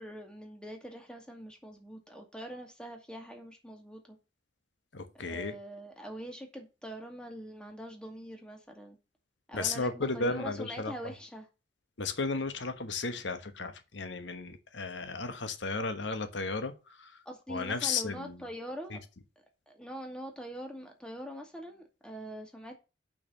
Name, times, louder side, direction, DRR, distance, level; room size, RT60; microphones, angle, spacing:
voice 1, 0.0-4.2 5.2-9.0 9.5-11.5 17.3-19.0 19.7-22.8, equal, 5° left, 2.2 m, -43 dB
voice 2, 4.9-5.5 9.5-10.9 12.0-17.1 17.5-18.4 18.9-19.0, left 4 dB, 80° left, 1.2 m, -34 dB
6.6 x 6.1 x 7.1 m
head